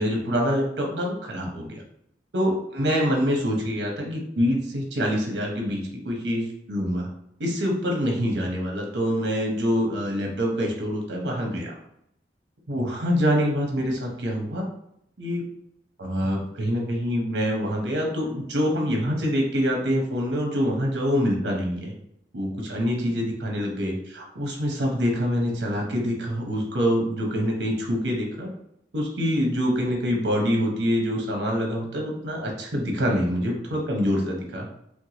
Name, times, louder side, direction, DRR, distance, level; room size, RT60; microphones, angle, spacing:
voice 1, 0.0-1.8 2.3-7.1 7.4-11.7 12.7-14.6 15.2-15.4 16.0-21.9 22.3-28.5 28.9-34.7, equal, 85° right, 0 dB, 1.0 m, -25 dB
4.6 x 2.2 x 2.9 m, 0.75 s
head